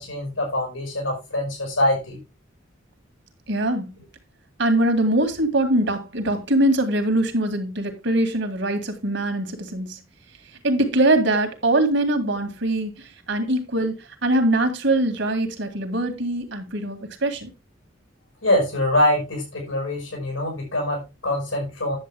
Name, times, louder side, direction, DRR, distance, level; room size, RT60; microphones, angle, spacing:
voice 1, 0.0-2.2 18.4-22.0, left 1 dB, 90° left, 5.6 m, -24 dB
voice 2, 3.5-3.9 4.6-10.0 10.6-17.5, right 1 dB, 65° right, 2.2 m, -22 dB
10.0 x 7.8 x 3.5 m
head